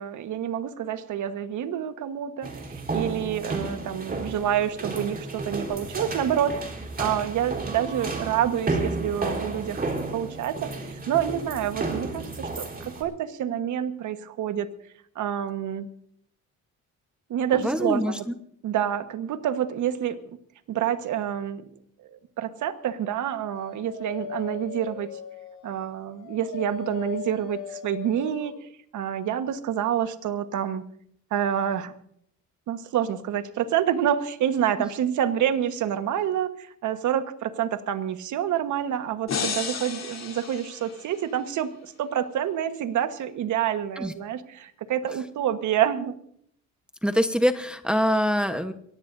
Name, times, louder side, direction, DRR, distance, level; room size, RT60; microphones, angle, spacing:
voice 1, 0.0-2.5 2.9-6.6 7.0-9.8 10.1-14.7 15.1-15.9 17.3-18.2 18.6-20.2 20.7-21.6 22.1-25.1 25.6-28.5 28.9-30.8 31.3-31.9 32.7-46.1, right 10 dB, 80° right, 9 dB, 1.4 m, -27 dB
sound 1, 2.4-13.0, right 3 dB, 30° right, 4.0 m, -32 dB
voice 2, 17.6-18.3 44.0-44.1 47.0-48.7, equal, 5° right, 7 dB, 1.1 m, -24 dB
Dog, 23.0-28.6, left 7 dB, 85° left, 3.3 m, -39 dB
sound 2, 39.3-41.4, left 6 dB, 60° left, 3.6 m, -33 dB
23.0 x 18.0 x 2.7 m, 0.66 s
cardioid pair, 90°, 30 cm